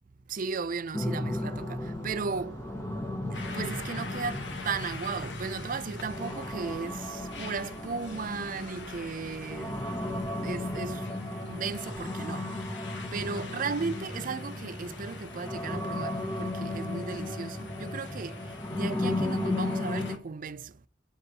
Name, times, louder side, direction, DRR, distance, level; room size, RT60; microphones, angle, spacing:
voice 1, 0.3-2.7 3.3-20.9, right 5 dB, 50° right, 0.5 m, -36 dB
sound 1, 0.9-20.2, left 1 dB, 15° left, 0.8 m, -35 dB
sound 2, 1.3-11.0, right 1 dB, 75° right, 1.3 m, -49 dB
sound 3, 3.3-20.2, left 4 dB, 75° left, 1.5 m, -46 dB
8.5 x 4.1 x 6.9 m
head